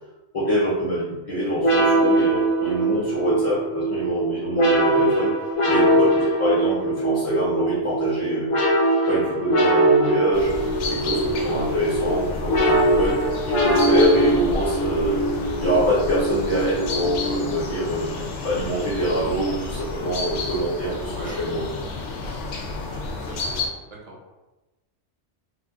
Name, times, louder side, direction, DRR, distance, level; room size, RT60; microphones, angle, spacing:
voice 1, 0.3-5.3 5.7-8.5 9.1-10.5 10.8-13.2 13.6-15.2 15.6-21.7, right 1 dB, 30° left, -10 dB, 0.9 m, -25 dB
sound 1, 1.6-17.8, right 1 dB, 55° left, 0.3 m, -22 dB
sound 2, 10.3-23.7, left 3 dB, 75° left, 0.9 m, -31 dB
voice 2, 21.1-21.4 22.9-23.8 24.0-24.2, right 2 dB, 40° right, -3 dB, 0.9 m, -41 dB
2.9 x 2.4 x 3.6 m, 1.1 s
omnidirectional pair, 1.2 m